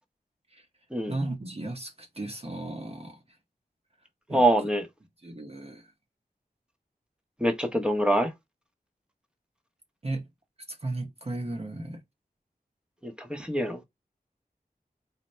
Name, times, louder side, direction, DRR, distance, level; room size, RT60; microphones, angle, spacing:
voice 1, 1.1-3.2 4.3-4.4 5.2-5.9 10.0-10.2 10.7-12.0, right 2 dB, 40° right, 0.8 m, -35 dB
voice 2, 4.3-4.9 7.4-8.3 13.0-13.8, right 1 dB, 5° right, 0.8 m, -25 dB
4.1 x 2.1 x 3.2 m
wide cardioid pair, 55°, 16 cm